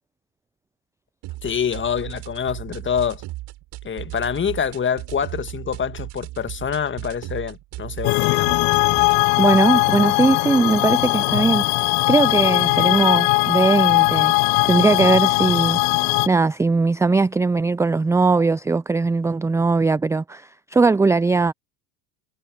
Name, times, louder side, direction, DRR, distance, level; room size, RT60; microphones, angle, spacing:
sound 1, 1.2-9.2, right 17 dB, 50° right, 6.1 m, -36 dB
voice 1, 1.4-3.2 3.8-8.5, left 7 dB, 25° left, 1.7 m, -26 dB
sound 2, 8.0-16.3, left 33 dB, 55° left, 1.1 m, -19 dB
voice 2, 9.4-11.7 12.1-14.3 14.6-15.8 16.3-21.5, right 3 dB, 5° right, 0.5 m, -19 dB
hypercardioid pair, 75°, 49 cm